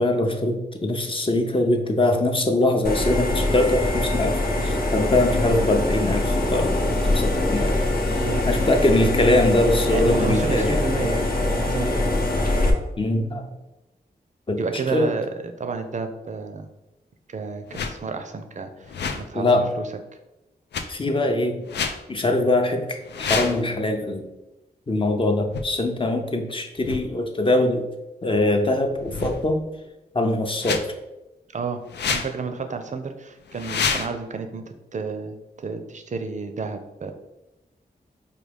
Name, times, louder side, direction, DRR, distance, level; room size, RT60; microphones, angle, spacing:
voice 1, 0.0-7.8 8.1-10.8 11.9-12.1 13.0-13.5 14.5-14.6 14.9-15.1 19.3-19.7 20.9-21.6 22.1-24.3 24.9-27.9 28.2-29.7 30.1-30.9, left 1 dB, 30° left, 4 dB, 0.6 m, -22 dB
sound 1, 2.8-12.7, left 1 dB, 60° left, 0.8 m, -23 dB
voice 2, 8.2-8.5 9.9-12.2 14.6-15.3 15.6-16.7 17.3-19.9 31.5-31.8 32.1-37.1, right 4 dB, 45° right, 7 dB, 0.5 m, -31 dB
sound 2, 17.7-18.0 18.8-19.3 20.7-20.8 21.7-22.0 23.0-23.6 25.5-25.6 26.8-27.0 28.9-29.6 30.6-30.8 31.9-32.3 33.5-34.1, left 5 dB, 90° left, 0.4 m, -28 dB
4.7 x 2.3 x 3.4 m, 0.98 s
cardioid pair, 65°, 17 cm